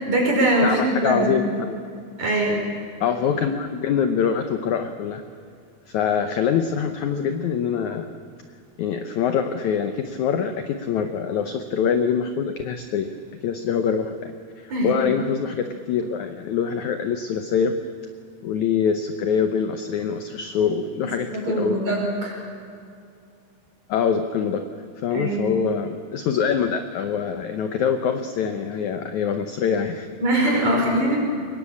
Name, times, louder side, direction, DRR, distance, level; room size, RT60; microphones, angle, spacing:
voice 1, 0.1-1.4 2.2-2.7 14.7-15.0 21.0-22.3 25.1-25.6 30.2-31.2, right 1 dB, 45° right, -1 dB, 6.5 m, -22 dB
voice 2, 0.6-1.8 3.0-5.2 5.9-8.1 8.8-13.1 13.4-17.8 18.4-21.8 23.9-24.6 25.0-30.1, left 7 dB, 70° left, 8 dB, 1.8 m, -24 dB
23.5 x 20.5 x 8.5 m, 2.4 s
omnidirectional pair, 4.4 m